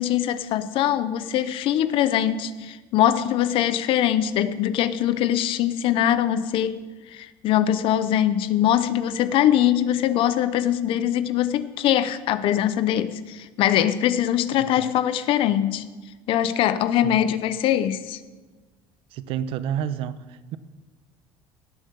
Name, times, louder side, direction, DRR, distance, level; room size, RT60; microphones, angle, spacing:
voice 1, 0.0-6.8 7.1-15.8 16.3-18.2, left 11 dB, 65° left, 0.8 m, -22 dB
voice 2, 19.1-20.6, right 9 dB, 70° right, 0.8 m, -30 dB
18.0 x 7.3 x 7.0 m
cardioid pair, 105°, 10 cm